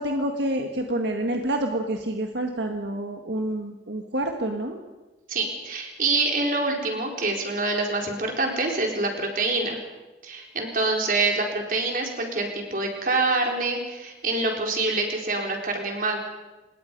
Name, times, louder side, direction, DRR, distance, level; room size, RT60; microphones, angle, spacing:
voice 1, 0.0-4.8, right 1 dB, 80° right, 3 dB, 1.7 m, -28 dB
voice 2, 5.3-9.8 10.2-16.2, right 3 dB, 50° right, 1 dB, 4.1 m, -26 dB
26.5 x 20.5 x 5.4 m, 1.2 s
head